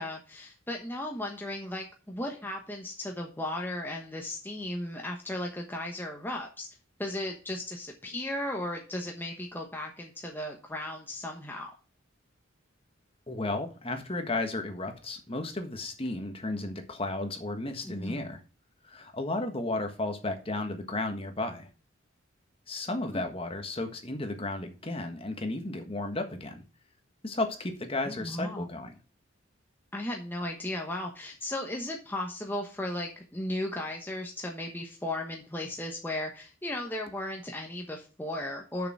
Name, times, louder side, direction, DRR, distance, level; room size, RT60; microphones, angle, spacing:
voice 1, 0.0-6.7 7.0-11.7 17.8-18.3 23.1-23.2 28.0-28.7 29.9-38.9, left 1 dB, 10° left, 1 dB, 1.1 m, -36 dB
voice 2, 13.3-18.4 18.8-21.7 22.7-26.6 27.2-28.9, left 2 dB, 30° left, 6 dB, 1.4 m, -33 dB
6.7 x 6.7 x 6.1 m, 0.36 s
head